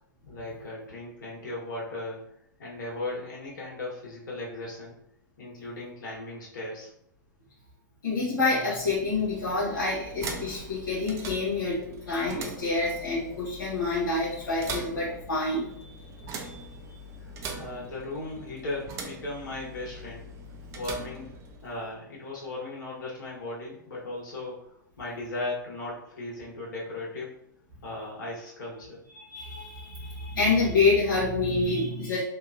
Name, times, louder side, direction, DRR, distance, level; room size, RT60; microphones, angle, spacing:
voice 1, 0.2-2.2 2.6-4.9 5.4-6.9 17.2-20.3 20.7-21.3 21.6-24.7 25.0-27.4 27.8-29.0, left 2 dB, 70° left, -5 dB, 1.3 m, -37 dB
voice 2, 8.0-16.0 16.4-16.7 29.3-32.2, left 3 dB, 85° left, -9 dB, 1.0 m, -27 dB
sound 1, 8.7-21.9, right 2 dB, 25° right, 0.4 m, -41 dB
2.9 x 2.2 x 2.5 m, 0.72 s
hypercardioid pair, 115°, 11 cm